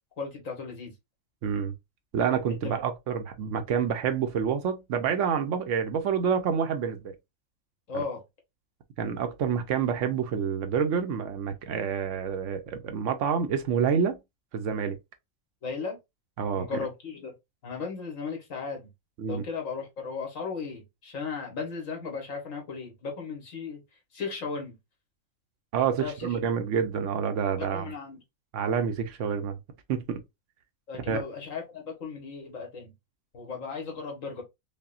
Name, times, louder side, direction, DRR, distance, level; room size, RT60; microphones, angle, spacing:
voice 1, 0.2-0.9 2.6-2.7 7.9-8.2 15.6-16.0 16.6-17.3 17.6-18.9 19.2-23.8 24.1-24.7 26.0-26.4 27.6-28.2 30.9-32.9 33.3-34.4, left 5 dB, 75° left, 1.7 m, -36 dB
voice 2, 1.4-1.7 2.1-7.1 7.9-8.0 9.0-14.2 14.5-15.0 16.4-16.7 19.2-19.4 25.7-27.9 28.5-29.6 29.9-30.2 31.1-31.2, right 7 dB, 70° right, 0.9 m, -28 dB
5.4 x 2.1 x 2.4 m
omnidirectional pair, 1.4 m